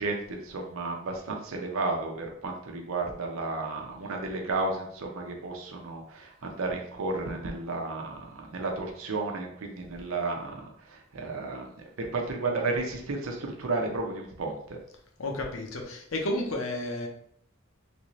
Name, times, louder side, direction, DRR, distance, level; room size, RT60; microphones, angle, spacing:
voice 1, 0.0-11.7 12.0-14.8, right 3 dB, 85° right, 2 dB, 0.6 m, -33 dB
voice 2, 15.2-17.1, left 1 dB, 80° left, 1 dB, 0.7 m, -31 dB
3.3 x 2.7 x 3.0 m, 0.68 s
head